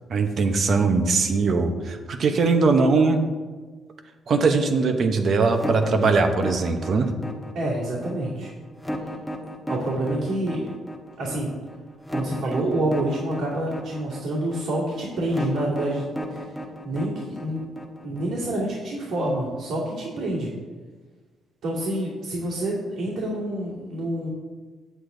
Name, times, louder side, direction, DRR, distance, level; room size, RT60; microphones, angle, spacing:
voice 1, 0.1-3.2 4.3-7.1, right 4 dB, 55° right, 6 dB, 1.0 m, -21 dB
sound 1, 5.5-18.4, equal, 10° left, 1.1 m, -34 dB
voice 2, 7.5-8.5 9.7-10.7 11.2-11.5 12.1-16.5 16.8-17.6 18.0-20.5 21.6-24.3, right 1 dB, 80° right, -8 dB, 2.7 m, -27 dB
8.4 x 7.9 x 3.9 m, 1.4 s
cardioid pair, 90°, 0 cm